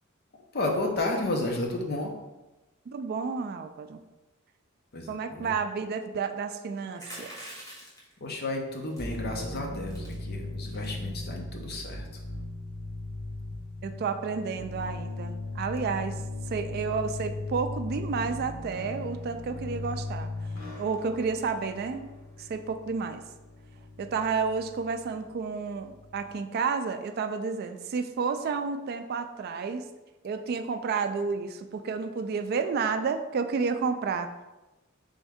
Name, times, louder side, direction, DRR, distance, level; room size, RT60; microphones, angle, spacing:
voice 1, 0.5-2.1 4.9-5.5 8.2-12.2, left 2 dB, 50° left, 2 dB, 0.7 m, -32 dB
voice 2, 2.9-4.0 5.1-7.3 13.8-20.3 20.8-22.1 22.4-23.2 24.0-29.9 30.2-34.3, right 5 dB, 50° right, 8 dB, 0.3 m, -31 dB
sound 1, 6.9-8.1 8.9-9.2 9.6-9.7 9.9-10.1 10.7-11.0, equal, 15° left, 1.1 m, -44 dB
sound 2, 9.0-26.4, left 2 dB, 80° left, 1.4 m, -38 dB
4.2 x 3.5 x 3.5 m, 1.1 s
head